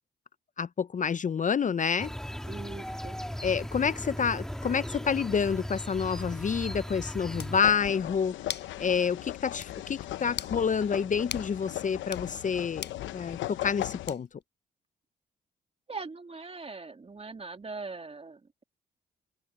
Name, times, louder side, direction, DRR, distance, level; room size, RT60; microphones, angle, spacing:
voice 1, 0.6-2.1 3.4-8.4 8.8-12.9 13.1-14.3, left 6 dB, 40° left, 0.6 m, -28 dB
sound 1, 2.0-7.6, equal, 5° left, 2.4 m, -37 dB
voice 2, 2.5-3.2 15.9-18.6, right 4 dB, 30° right, 2.5 m, -41 dB
sound 2, 7.4-7.6 8.5-8.7 9.1-9.2 9.6-9.7 10.3-10.6 11.3-11.5 12.0-12.3 12.8-13.0 14.1-14.4, left 8 dB, 65° left, 5.3 m, -38 dB
sound 3, 7.5-14.1, left 14 dB, 90° left, 0.8 m, -38 dB
cardioid pair, 65°, 19 cm